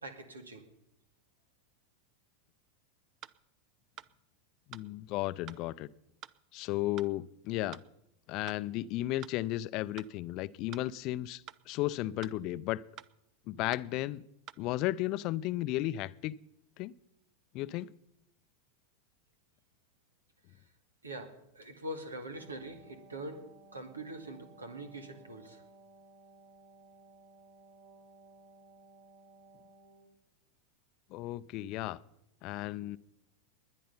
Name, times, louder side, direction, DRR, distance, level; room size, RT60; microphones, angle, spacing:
voice 1, 0.0-0.6 21.0-23.4 23.7-25.6, right 1 dB, 85° right, 7 dB, 2.3 m, -43 dB
sound 1, 3.2-3.4 4.0-4.1 4.7-4.9 5.5-5.6 6.2-6.4 7.0-7.1 7.7-7.9 8.5-8.6 9.2-9.4 10.0-10.1 10.7-10.9 11.5-11.6 12.2-12.4 13.0-13.1 13.7-13.9 14.5-14.6, right 11 dB, 40° right, 0.6 m, -48 dB
voice 2, 4.7-5.9 6.5-7.8 8.3-12.8 13.5-14.2 14.6-16.4 16.8-16.9 17.5-17.9 31.1-32.0 32.4-33.0, left 16 dB, 50° left, 17 dB, 0.6 m, -34 dB
Wind instrument woodwind instrument, 22.2-30.2, right 3 dB, 55° right, 7.3 m, -58 dB
20.5 x 10.0 x 5.6 m, 0.82 s
figure-of-eight pair, 90°, 0 cm